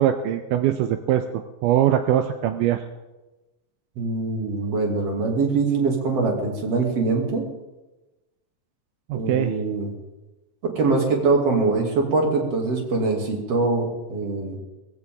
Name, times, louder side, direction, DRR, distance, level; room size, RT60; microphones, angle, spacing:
voice 1, 0.0-2.8 9.1-9.5, right 11 dB, 85° right, 7 dB, 2.2 m, -22 dB
voice 2, 4.0-7.4 9.1-9.9 10.6-14.6, right 3 dB, 50° right, 1 dB, 3.3 m, -23 dB
20.5 x 15.5 x 3.6 m, 1.1 s
omnidirectional pair, 3.7 m